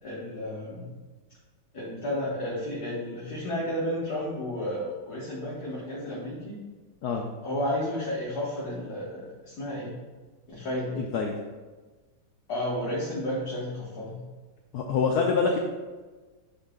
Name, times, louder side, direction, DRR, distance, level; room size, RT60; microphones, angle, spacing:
voice 1, 0.0-0.9 1.7-6.6 7.4-10.0 10.5-11.0 12.5-14.2, left 1 dB, 50° left, -8 dB, 1.8 m, -32 dB
voice 2, 10.9-11.3 14.7-15.6, left 5 dB, 80° left, 2 dB, 0.8 m, -25 dB
9.7 x 3.9 x 3.8 m, 1.3 s
omnidirectional pair, 2.4 m